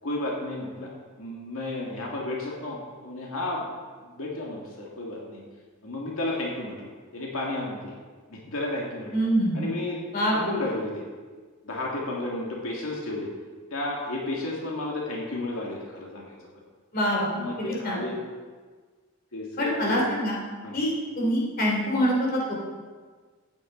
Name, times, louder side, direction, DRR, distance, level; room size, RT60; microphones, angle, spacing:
voice 1, 0.0-0.9 1.2-3.7 4.0-5.4 5.8-8.0 8.3-9.1 9.5-10.0 10.3-11.0 11.6-13.3 13.7-16.4 17.3-18.1 19.3-20.0 20.6-20.8, left 2 dB, 80° left, -3 dB, 2.1 m, -32 dB
voice 2, 9.1-9.6 10.1-10.4 16.9-17.3 17.8-18.0 19.6-20.3 20.7-22.5, equal, 45° left, -3 dB, 2.8 m, -25 dB
14.5 x 9.4 x 3.9 m, 1.5 s
head